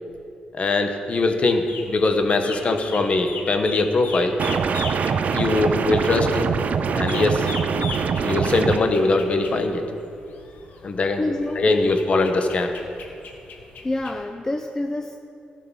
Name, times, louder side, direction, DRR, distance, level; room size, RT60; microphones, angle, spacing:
voice 1, 0.5-4.4 5.3-6.5 6.9-7.5 8.2-9.8 10.8-11.3 11.6-12.7, left 3 dB, 45° left, 5 dB, 1.1 m, -21 dB
sound 1, 1.3-14.2, left 4 dB, 75° left, 1.4 m, -39 dB
sound 2, 4.4-8.8, right 6 dB, 60° right, 0.5 m, -23 dB
voice 2, 11.2-11.9 13.8-15.2, left 2 dB, 20° left, 5 dB, 0.5 m, -27 dB
14.5 x 6.7 x 5.6 m, 2.6 s
cardioid pair, 100°, 3 cm